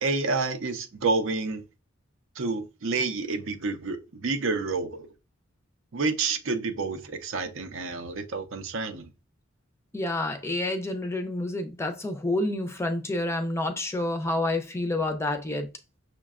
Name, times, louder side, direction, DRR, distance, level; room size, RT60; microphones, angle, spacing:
voice 1, 0.0-1.6 2.4-5.0 5.9-9.1, right 3 dB, 65° right, 0.6 m, -29 dB
voice 2, 9.9-15.7, left 2 dB, 15° left, 0.5 m, -28 dB
6.2 x 2.2 x 2.3 m
head